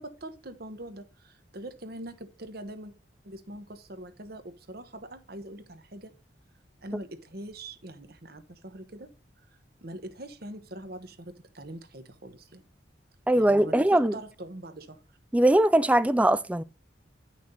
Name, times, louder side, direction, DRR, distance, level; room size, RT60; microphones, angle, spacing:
voice 1, 0.0-2.9 3.2-6.1 6.8-9.1 9.8-12.6 13.4-15.0, right 1 dB, 55° right, 1.2 m, -43 dB
voice 2, 13.3-14.2 15.3-16.6, right 1 dB, 5° right, 0.3 m, -21 dB
10.5 x 6.0 x 4.1 m
head